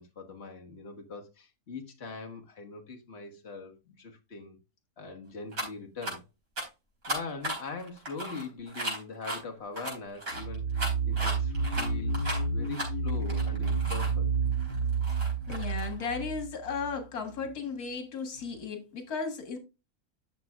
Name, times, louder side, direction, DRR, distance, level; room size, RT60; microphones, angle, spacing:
voice 1, 0.0-4.6 5.0-6.2 7.1-14.3, left 4 dB, 45° left, 1.7 m, -42 dB
sound 1, 5.5-5.7 6.0-6.1 6.6-6.7 7.0-9.4 9.8-14.1 14.5-16.1, right 1 dB, 65° right, 4.6 m, -36 dB
sound 2, 10.3-16.9, right 4 dB, 45° right, 0.9 m, -30 dB
voice 2, 15.5-19.6, left 5 dB, 85° left, 2.1 m, -35 dB
11.0 x 6.8 x 2.4 m
omnidirectional pair, 1.6 m